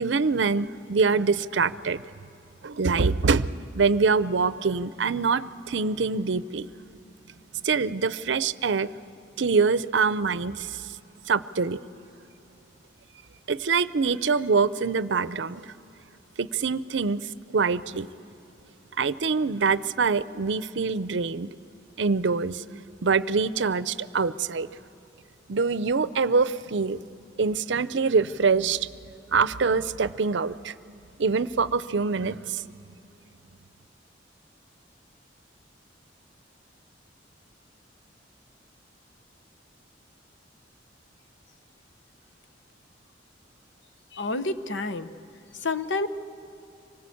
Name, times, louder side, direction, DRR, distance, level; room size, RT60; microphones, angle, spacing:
voice 1, 0.0-2.0 2.6-6.7 7.6-8.9 9.4-10.8 11.3-11.8 13.5-15.6 16.4-17.3 17.5-18.1 19.0-21.5 22.0-22.6 23.0-24.7 25.5-27.0 27.4-28.9 29.3-30.7 31.2-32.6, right 4 dB, 70° right, 16 dB, 0.6 m, -24 dB
voice 2, 44.1-45.1 45.6-46.1, left 3 dB, 75° left, 11 dB, 0.9 m, -28 dB
25.5 x 19.5 x 8.5 m, 2.8 s
head